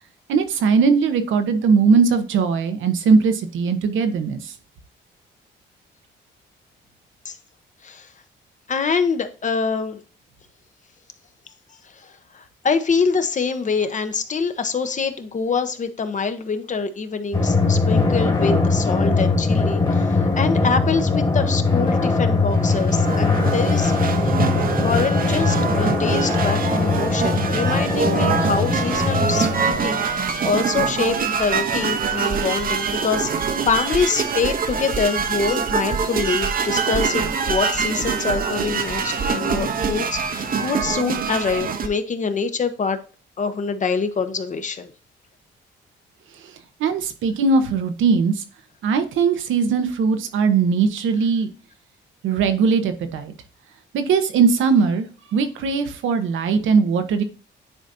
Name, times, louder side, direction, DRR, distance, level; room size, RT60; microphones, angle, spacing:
voice 1, 0.3-4.5 46.8-48.4 48.8-51.5 52.2-53.3 53.9-55.1 55.3-57.2, right 5 dB, 80° right, 9 dB, 1.0 m, -19 dB
voice 2, 8.7-10.0 12.3-23.9 24.8-30.0 30.4-43.0 43.4-44.9, left 5 dB, 40° left, 9 dB, 0.9 m, -25 dB
Drum, 17.3-30.4, left 3 dB, 25° left, 1.6 m, -21 dB
sound 1, 22.5-41.9, right 6 dB, 45° right, 0.9 m, -24 dB
9.9 x 4.1 x 2.7 m, 0.39 s
cardioid pair, 90°, 20 cm